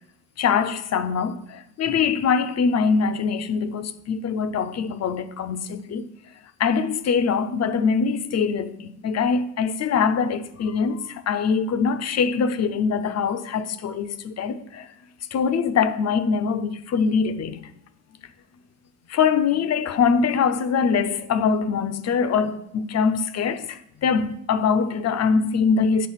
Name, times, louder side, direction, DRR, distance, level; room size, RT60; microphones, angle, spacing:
voice 1, 0.4-6.1 6.6-14.9 15.3-17.7 19.1-26.1, left 6 dB, 50° left, 0.5 m, -23 dB
7.4 x 3.5 x 5.6 m
cardioid pair, 100°, 35 cm